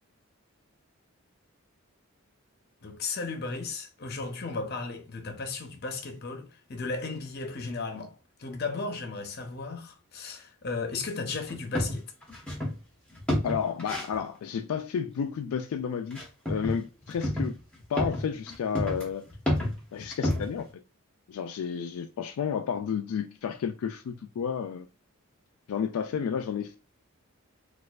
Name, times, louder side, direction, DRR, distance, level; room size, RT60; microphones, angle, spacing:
voice 1, 2.8-8.1 8.4-12.1, left 3 dB, 45° left, 0.7 m, -35 dB
sound 1, 11.5-12.8 13.1-14.2 16.1-16.8 17.0-20.7, left 1 dB, 5° left, 0.9 m, -29 dB
voice 2, 13.4-17.6 17.9-19.3 19.9-20.7 21.3-24.9 25.7-26.8, left 7 dB, 80° left, 0.3 m, -31 dB
4.2 x 2.4 x 2.3 m
head